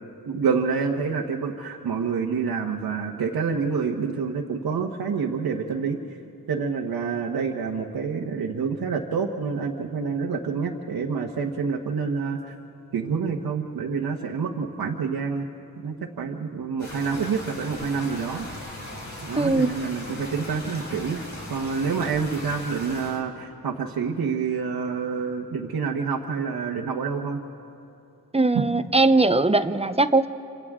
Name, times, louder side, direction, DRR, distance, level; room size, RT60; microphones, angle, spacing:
voice 1, 0.2-6.0 6.5-12.5 12.9-15.4 15.8-18.5 19.2-21.2 21.5-27.4 28.5-28.7, right 5 dB, 80° right, 0 dB, 1.3 m, -27 dB
sound 1, 16.8-23.2, left 1 dB, 50° left, 4.4 m, -38 dB
voice 2, 19.4-19.7 28.3-30.3, right 2 dB, 15° right, 11 dB, 0.7 m, -20 dB
28.5 x 26.5 x 3.7 m, 2.8 s
cardioid pair, 80°, 36 cm